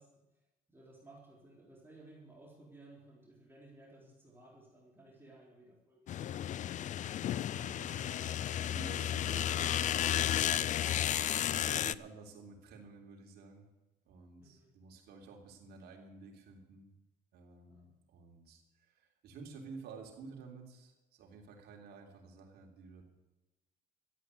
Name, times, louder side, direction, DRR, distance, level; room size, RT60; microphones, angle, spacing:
voice 1, 0.0-6.0 14.4-14.7 17.7-18.0, right 2 dB, 15° right, -4 dB, 4.0 m, -58 dB
sound 1, 6.1-11.9, left 11 dB, 45° left, 0.4 m, -33 dB
voice 2, 7.5-8.4 8.7-10.6 11.5-13.7 14.1-16.9 17.3-23.0, right 4 dB, 70° right, 1 dB, 3.5 m, -52 dB
13.5 x 9.1 x 7.9 m, 1.0 s
cardioid pair, 110°, 17 cm